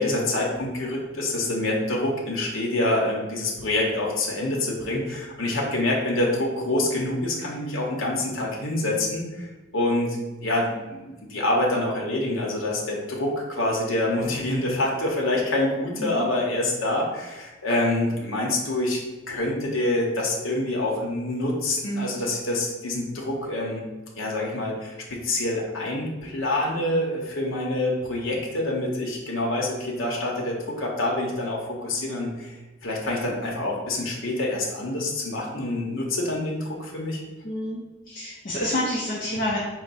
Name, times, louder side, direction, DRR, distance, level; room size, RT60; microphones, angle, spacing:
voice 1, 0.0-9.5 9.7-10.2 10.4-19.0 19.3-23.8 24.2-32.5 32.8-37.2, left 1 dB, 75° left, -2 dB, 0.8 m, -26 dB
voice 2, 37.4-39.6, left 1 dB, 40° left, -4 dB, 0.5 m, -28 dB
4.5 x 2.1 x 4.0 m, 1.2 s
head